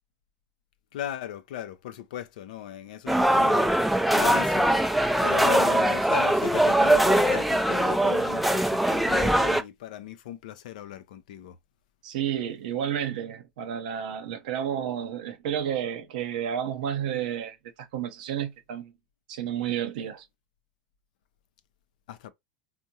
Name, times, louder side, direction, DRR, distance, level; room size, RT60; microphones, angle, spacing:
voice 1, 0.9-3.7 4.1-4.8 5.2-11.6 22.1-22.3, left 11 dB, 75° left, 0.5 m, -37 dB
sound 1, 3.1-9.6, right 1 dB, ahead, 0.3 m, -22 dB
voice 2, 12.0-17.6 17.9-18.9 19.3-20.2, right 9 dB, 70° right, 0.8 m, -31 dB
3.6 x 2.1 x 2.7 m
hypercardioid pair, 115°, 4 cm